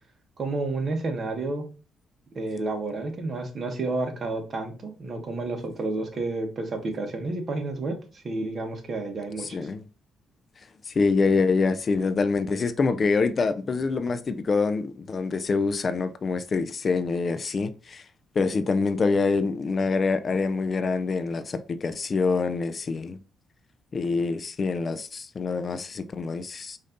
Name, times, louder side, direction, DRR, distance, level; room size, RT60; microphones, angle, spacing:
voice 1, 0.4-1.6 2.3-9.6, right 2 dB, 45° right, 1.3 m, -30 dB
voice 2, 9.4-9.8 10.9-18.0 18.4-23.2 23.9-26.8, left 4 dB, 40° left, 0.4 m, -25 dB
5.1 x 2.7 x 3.8 m
cardioid pair, 90°, 0 cm